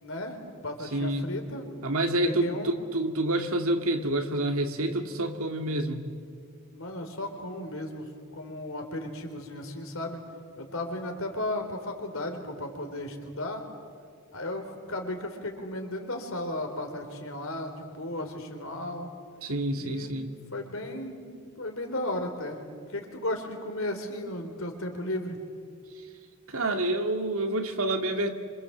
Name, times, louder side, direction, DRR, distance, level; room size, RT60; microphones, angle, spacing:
voice 1, 0.0-0.4 0.6-1.7 2.2-2.7 6.7-10.2 10.6-13.6 14.3-19.1 19.8-20.2 20.5-22.6 22.9-25.4, left 1 dB, 65° left, 4 dB, 3.6 m, -35 dB
voice 2, 0.9-1.3 1.8-6.1 19.4-20.3 26.0-26.1 26.5-28.3, right 1 dB, 70° right, 5 dB, 2.2 m, -28 dB
26.5 x 25.0 x 7.9 m, 2.1 s
head